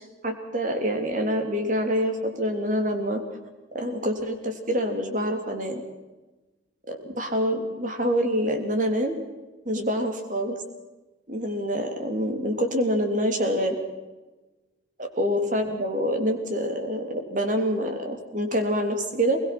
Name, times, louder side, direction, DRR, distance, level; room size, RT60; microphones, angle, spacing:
voice 1, 0.2-3.2 3.7-5.8 6.9-9.1 9.6-10.6 11.3-13.8 15.0-19.4, equal, 40° right, 5 dB, 3.3 m, -26 dB
22.0 x 21.5 x 6.1 m, 1.2 s
head